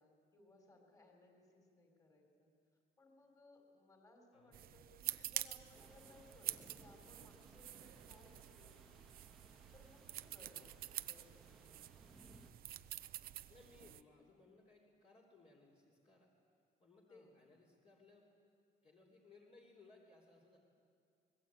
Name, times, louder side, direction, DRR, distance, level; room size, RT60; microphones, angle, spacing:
voice 1, 0.0-2.5 3.0-9.1 9.7-11.8 17.1-17.3, left 2 dB, 20° left, 2 dB, 3.8 m, -65 dB
sound 1, 4.5-14.0, right 12 dB, 60° right, 0.6 m, -48 dB
sound 2, 5.7-12.5, right 1 dB, ahead, 1.4 m, -64 dB
voice 2, 8.6-9.0 10.5-10.8 12.4-12.7 13.3-16.3 16.8-18.3 18.8-20.6, left 3 dB, 35° left, -3 dB, 3.2 m, -65 dB
24.5 x 21.0 x 8.6 m, 2.3 s
cardioid pair, 175°, 17 cm